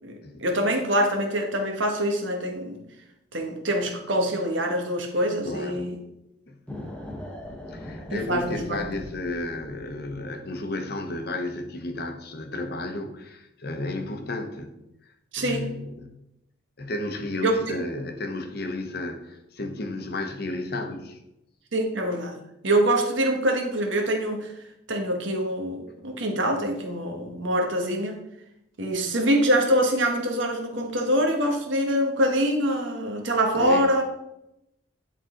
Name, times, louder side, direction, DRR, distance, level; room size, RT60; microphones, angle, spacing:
voice 1, 0.0-2.8 3.3-6.0 8.1-8.9 15.3-15.7 17.4-17.5 21.7-22.4 22.6-24.5 24.9-28.2 28.8-34.0, right 1 dB, 75° right, 3 dB, 1.3 m, -25 dB
voice 2, 5.4-5.9 6.5-6.6 7.7-14.7 15.4-16.1 16.8-21.2 33.5-34.0, left 2 dB, 50° left, 5 dB, 0.9 m, -33 dB
sound 1, 6.7-10.4, left 1 dB, 5° left, 0.9 m, -40 dB
10.5 x 3.9 x 3.8 m, 0.87 s
head